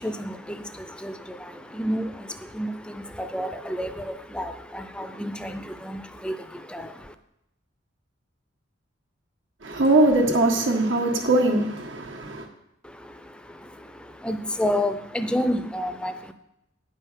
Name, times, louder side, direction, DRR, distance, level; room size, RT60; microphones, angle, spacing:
voice 1, 0.0-7.1 12.8-16.3, equal, 5° left, 0.5 m, -31 dB
voice 2, 9.6-12.5, right 2 dB, 80° right, 1.6 m, -21 dB
9.9 x 5.5 x 7.4 m
head